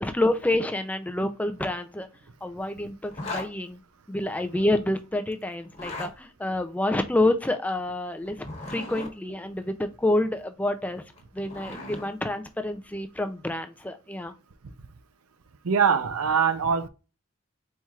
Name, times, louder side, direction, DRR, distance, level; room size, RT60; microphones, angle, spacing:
voice 1, 0.0-2.1 2.4-3.8 4.1-11.0 11.3-14.3, left 1 dB, 5° left, 0.3 m, -28 dB
Zipper (clothing), 3.1-3.5 5.6-6.1 8.3-9.1 11.0-12.1, left 2 dB, 30° left, 1.2 m, -36 dB
voice 2, 15.6-16.9, right 6 dB, 85° right, 0.6 m, -22 dB
4.5 x 4.2 x 2.4 m
head